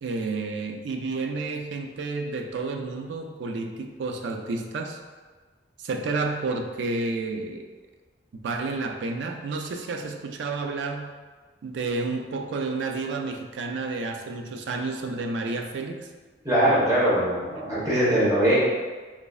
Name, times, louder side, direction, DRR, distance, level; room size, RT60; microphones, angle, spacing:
voice 1, 0.0-5.0 5.8-7.6 8.4-11.1 11.6-16.1, right 3 dB, 85° right, 4 dB, 0.4 m, -30 dB
voice 2, 16.4-18.5, right 1 dB, 20° right, -9 dB, 1.1 m, -21 dB
3.7 x 3.0 x 2.3 m, 1.4 s
head